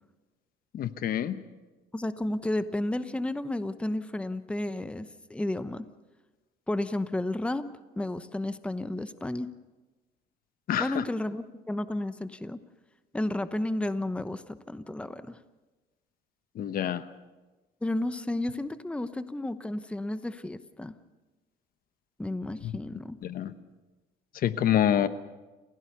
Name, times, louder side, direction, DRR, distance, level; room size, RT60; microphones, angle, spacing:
voice 1, 0.7-1.4 10.7-11.0 16.5-17.0 22.6-22.7 23.2-23.5 24.3-25.1, left 10 dB, 60° left, 12 dB, 1.1 m, -27 dB
voice 2, 1.9-5.9 6.7-7.7 8.0-9.5 10.8-12.6 13.1-15.4 17.8-20.9 22.2-23.2, left 1 dB, 5° left, 12 dB, 0.9 m, -32 dB
30.0 x 16.0 x 6.8 m, 1.2 s
cardioid pair, 110°, 17 cm